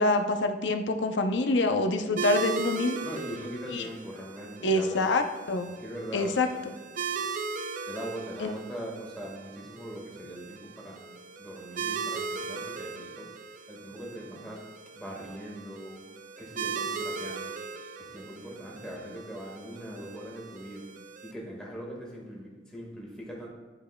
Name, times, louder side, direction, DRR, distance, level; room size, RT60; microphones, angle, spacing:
voice 1, 0.0-3.0 3.7-3.9 4.6-5.7 6.1-6.5 8.4-8.5, left 2 dB, 75° left, 5 dB, 0.6 m, -26 dB
sound 1, 2.2-21.3, right 5 dB, 45° right, 0.4 m, -38 dB
voice 2, 3.0-5.2 5.8-6.6 7.9-11.0 11.4-13.3 13.7-14.6 14.9-16.0 16.4-17.5 18.0-20.9 21.2-23.5, equal, 5° left, -3 dB, 1.7 m, -41 dB
11.5 x 5.0 x 2.2 m, 1.4 s
head